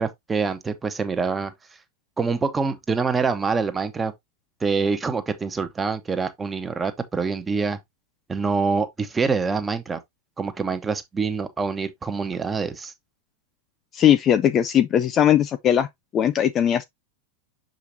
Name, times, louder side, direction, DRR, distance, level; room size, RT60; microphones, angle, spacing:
voice 1, 0.0-1.5 2.2-4.1 4.6-7.8 8.3-10.0 10.4-12.9, right 4 dB, 15° right, 1.1 m, -25 dB
voice 2, 13.9-15.9 16.1-16.8, left 10 dB, 30° left, 0.5 m, -19 dB
6.9 x 5.1 x 2.8 m
figure-of-eight pair, 90°, 0 cm